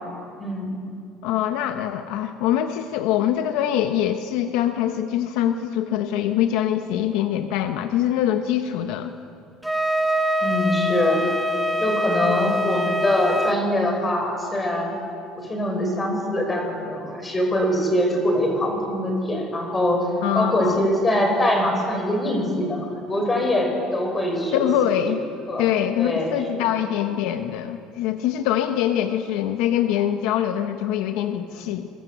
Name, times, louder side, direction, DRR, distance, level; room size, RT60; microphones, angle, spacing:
voice 1, 0.4-0.7 10.4-11.2 11.8-14.9 15.4-20.1 20.4-24.7 25.5-25.7 26.0-26.7 31.5-31.7, left 1 dB, 15° left, 2 dB, 5.1 m, -23 dB
voice 2, 1.2-9.1 20.2-20.8 24.5-25.2 25.6-31.9, left 10 dB, 65° left, 7 dB, 1.1 m, -24 dB
Wind instrument woodwind instrument, 9.6-13.6, equal, 5° right, 1.1 m, -24 dB
27.0 x 22.5 x 8.1 m, 2.5 s
cardioid pair, 180°, 0 cm